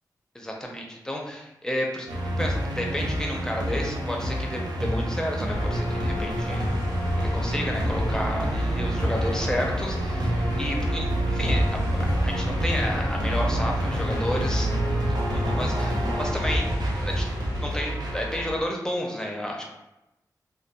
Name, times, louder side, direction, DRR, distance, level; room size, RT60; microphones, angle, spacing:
voice 1, 0.3-2.1 2.4-6.8 7.2-14.7 15.1-16.7 17.0-17.3 17.6-19.7, left 1 dB, 10° left, 0 dB, 0.5 m, -31 dB
sound 1, 2.1-18.5, equal, 70° right, 0.5 m, -29 dB
sound 2, 5.5-18.6, equal, 85° left, 0.5 m, -29 dB
2.8 x 2.2 x 2.2 m, 0.93 s
wide cardioid pair, 70°, 7 cm